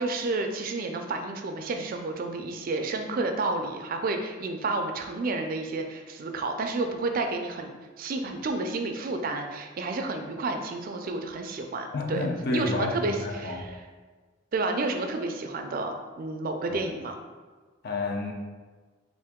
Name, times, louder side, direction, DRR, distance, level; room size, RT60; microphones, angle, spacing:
voice 1, 0.0-7.7 8.0-13.8 14.5-17.2, right 3 dB, 50° right, 5 dB, 0.4 m, -30 dB
voice 2, 11.9-13.7 16.7-17.0 17.8-18.3, left 2 dB, 55° left, 2 dB, 0.5 m, -30 dB
3.6 x 2.5 x 3.5 m, 1.4 s
head